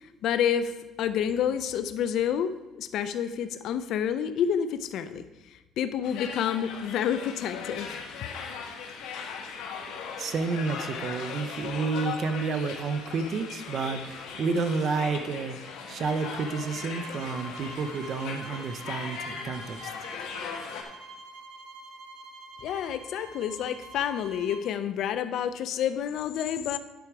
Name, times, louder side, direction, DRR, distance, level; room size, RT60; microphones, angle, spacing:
voice 1, 0.0-8.0 22.6-26.8, left 9 dB, 60° left, 12 dB, 0.5 m, -29 dB
sound 1, 6.0-20.8, left 6 dB, 85° left, 1.2 m, -38 dB
voice 2, 10.2-19.9, right 4 dB, 40° right, 9 dB, 0.6 m, -30 dB
sound 2, 16.0-24.7, right 2 dB, 65° right, 1.0 m, -46 dB
10.0 x 5.0 x 4.7 m, 1.1 s
cardioid pair, 145°, 0 cm